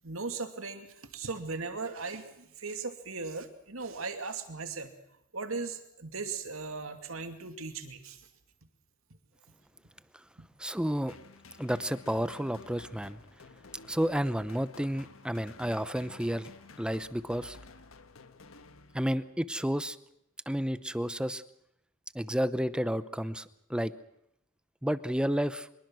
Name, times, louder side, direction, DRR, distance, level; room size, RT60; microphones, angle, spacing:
voice 1, 0.0-4.9 5.3-8.3, right 4 dB, 85° right, 7 dB, 2.6 m, -38 dB
voice 2, 10.6-11.2 11.6-13.2 13.9-16.5 16.8-17.6 18.9-20.0 20.5-21.4 22.1-23.9 24.8-25.7, equal, 5° right, 14 dB, 0.8 m, -31 dB
sound 1, 11.1-19.4, left 4 dB, 80° left, 1.3 m, -53 dB
24.5 x 21.5 x 6.3 m, 0.78 s
head